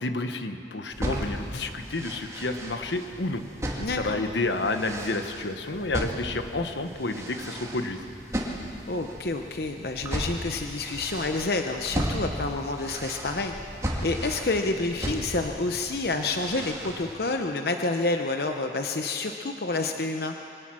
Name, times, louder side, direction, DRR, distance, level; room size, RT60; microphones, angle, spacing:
voice 1, 0.0-3.4 3.9-8.0, left 2 dB, 80° left, 7 dB, 1.2 m, -30 dB
sound 1, 0.9-17.1, equal, 15° right, 2.2 m, -35 dB
voice 2, 3.8-4.2 8.9-13.5 14.0-20.3, left 3 dB, 60° left, 5 dB, 0.8 m, -28 dB
23.0 x 18.0 x 6.2 m, 2.8 s
head